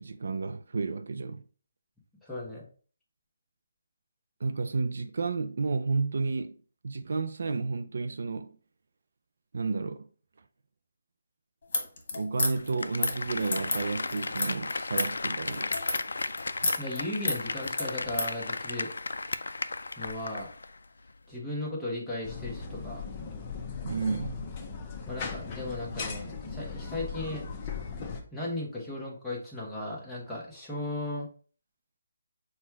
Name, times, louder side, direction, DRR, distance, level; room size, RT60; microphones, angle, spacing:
voice 1, 0.0-1.4 4.4-6.6 6.8-8.6 9.5-10.0 12.1-15.7 23.8-24.3, right 4 dB, 65° right, 0.4 m, -31 dB
voice 2, 2.2-2.6 16.8-18.9 20.0-20.5 21.3-23.1 25.1-27.4 28.3-31.3, left 1 dB, 5° left, 0.9 m, -36 dB
sound 1, 11.6-18.3, left 3 dB, 55° left, 1.3 m, -32 dB
Applause, 12.6-20.8 21.1-21.2, left 3 dB, 85° left, 0.3 m, -35 dB
sound 2, 22.2-28.2, left 5 dB, 25° left, 0.6 m, -38 dB
4.3 x 2.3 x 4.6 m
hypercardioid pair, 165°, 0 cm